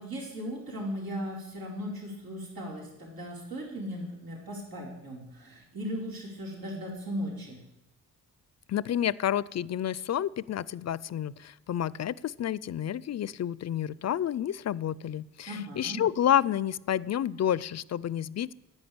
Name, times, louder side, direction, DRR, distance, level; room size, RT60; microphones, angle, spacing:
voice 1, 0.0-7.6 15.5-16.0, equal, 80° right, -2 dB, 4.7 m, -37 dB
voice 2, 8.7-18.5, left 10 dB, 50° left, 21 dB, 0.5 m, -29 dB
10.5 x 9.4 x 8.7 m, 0.96 s
cardioid pair, 90°, 35 cm